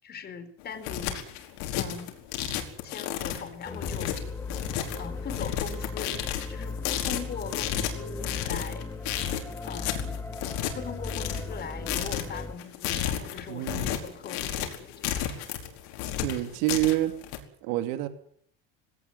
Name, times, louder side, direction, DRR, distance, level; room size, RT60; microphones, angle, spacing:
voice 1, 0.0-1.3 1.7-2.1 2.8-4.2 4.9-8.9 9.6-10.2 10.7-15.3, left 6 dB, 35° left, 7 dB, 4.6 m, -40 dB
sound 1, 0.6-17.4, left 11 dB, 70° left, 4.8 m, -32 dB
sound 2, 3.6-12.5, left 3 dB, 10° left, 2.1 m, -37 dB
voice 2, 13.5-13.9 16.2-17.1 17.6-18.1, right 16 dB, 70° right, 9 dB, 3.0 m, -27 dB
19.0 x 18.0 x 9.4 m, 0.62 s
supercardioid pair, 120°, 30 cm